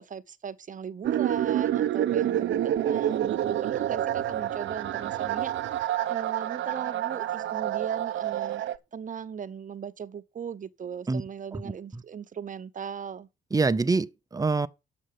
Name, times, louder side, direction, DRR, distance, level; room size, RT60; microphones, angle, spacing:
voice 1, 0.0-8.6 8.9-13.3, right 7 dB, 40° right, 0.9 m, -38 dB
sound 1, 1.0-8.8, right 11 dB, 75° right, 0.9 m, -28 dB
voice 2, 13.5-14.7, right 3 dB, 20° right, 0.7 m, -25 dB
7.6 x 6.3 x 7.4 m
cardioid pair, 90°, 20 cm